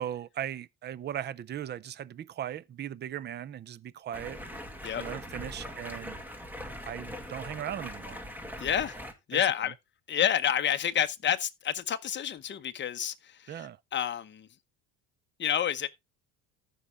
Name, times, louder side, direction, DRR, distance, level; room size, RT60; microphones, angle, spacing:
voice 1, 0.0-4.4 4.9-6.2 6.8-8.3 9.3-9.5 13.5-13.8, right 10 dB, 30° right, 0.4 m, -38 dB
Stream, 4.1-9.1, equal, 5° right, 1.7 m, -41 dB
voice 2, 8.6-9.0 9.3-9.7 10.1-14.5 15.4-15.9, left 9 dB, 30° left, 0.8 m, -29 dB
14.0 x 5.5 x 3.5 m
cardioid pair, 120°, 39 cm